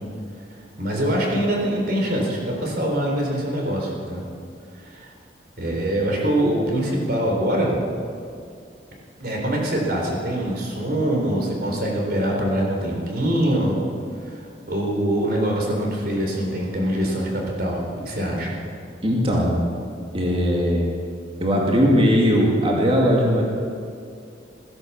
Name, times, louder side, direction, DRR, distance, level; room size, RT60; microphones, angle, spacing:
voice 1, 0.8-4.2 4.8-5.1 5.6-7.7 9.2-13.8 14.2-18.6, right 1 dB, 55° right, -1 dB, 3.8 m, -24 dB
voice 2, 19.0-19.6 20.1-20.9 21.4-23.4, equal, 30° right, -2 dB, 2.2 m, -19 dB
16.5 x 10.5 x 7.3 m, 2.4 s
head